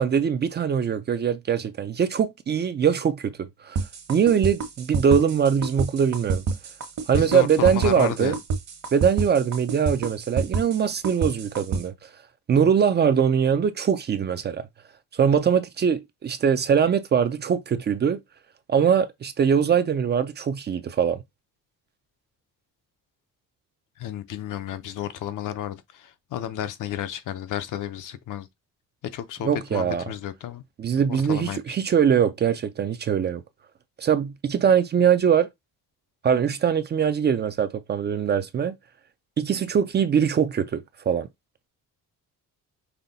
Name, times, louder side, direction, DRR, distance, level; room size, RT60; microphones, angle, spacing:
voice 1, 0.0-6.4 7.1-8.3 8.9-12.1 12.5-14.7 15.1-18.2 18.7-21.2 29.4-30.0 30.8-33.4 34.0-35.5 36.2-38.8 39.4-41.3, right 7 dB, 35° right, 0.4 m, -22 dB
sound 1, 3.8-11.8, right 4 dB, 55° right, 1.2 m, -27 dB
voice 2, 7.1-8.4 24.0-28.5 29.1-30.6 31.1-31.6, left 11 dB, 70° left, 0.7 m, -32 dB
5.6 x 2.2 x 3.9 m
cardioid pair, 155°, 33 cm